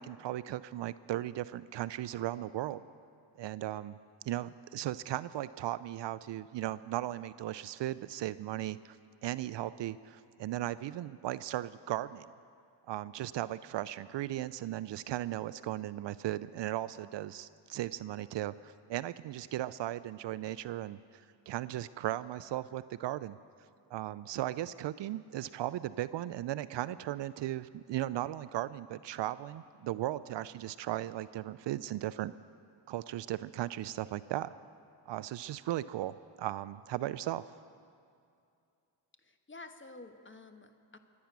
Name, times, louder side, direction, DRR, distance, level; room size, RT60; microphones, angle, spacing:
voice 1, 0.0-2.9 3.4-4.0 4.2-9.0 9.2-12.3 12.9-23.4 23.9-32.3 32.9-34.5 35.1-37.4, right 14 dB, 60° right, 16 dB, 0.5 m, -37 dB
voice 2, 39.2-41.0, left 3 dB, 25° left, 7 dB, 1.3 m, -51 dB
23.5 x 9.5 x 6.0 m, 2.5 s
supercardioid pair, 60°, 49 cm